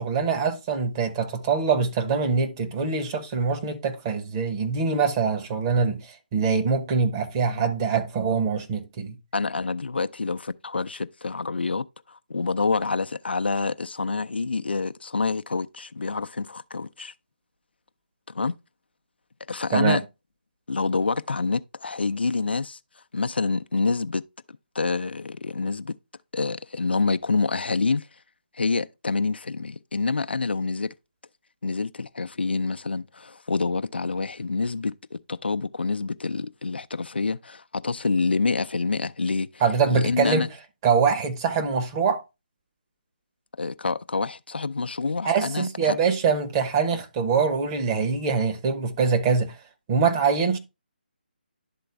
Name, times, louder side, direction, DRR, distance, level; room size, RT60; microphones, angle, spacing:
voice 1, 0.0-9.2 19.7-20.0 39.6-40.5 40.8-42.2 45.2-49.5 49.9-50.6, right 5 dB, 25° right, 1.0 m, -24 dB
voice 2, 9.3-17.1 18.3-18.5 19.5-20.0 20.7-22.8 23.1-24.2 24.7-25.9 26.3-28.1 28.5-30.9 31.6-39.5 39.9-40.5 43.6-46.0, left 4 dB, 80° left, 0.5 m, -27 dB
11.0 x 3.9 x 3.3 m
figure-of-eight pair, 155°, 6 cm